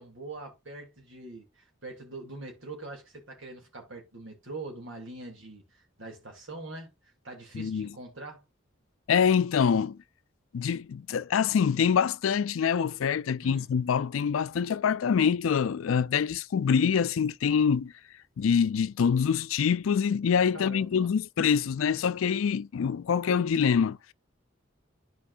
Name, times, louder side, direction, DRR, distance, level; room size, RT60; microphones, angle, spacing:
voice 1, 0.0-6.9 7.2-8.5 13.4-13.7 20.5-21.1, right 2 dB, 75° right, 2.8 m, -43 dB
voice 2, 7.5-7.9 9.1-10.0 10.5-17.9 18.4-24.1, left 7 dB, 85° left, 0.4 m, -25 dB
12.5 x 4.6 x 2.5 m
head